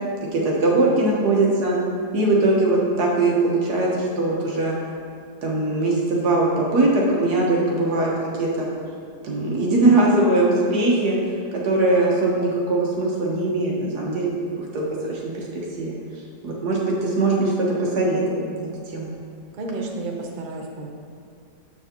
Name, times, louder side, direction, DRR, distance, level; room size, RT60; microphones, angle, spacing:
voice 1, 0.3-1.8 2.1-4.8 5.4-8.1 8.4-8.7 9.2-11.2 11.5-15.2 15.8-15.9 16.4-17.7 18.0-18.4 18.9-19.1, right 2 dB, 70° right, -3 dB, 1.7 m, -21 dB
voice 2, 17.7-18.2 19.5-20.9, right 2 dB, 55° right, 1 dB, 0.5 m, -32 dB
7.4 x 6.3 x 2.9 m, 2.4 s
omnidirectional pair, 1.8 m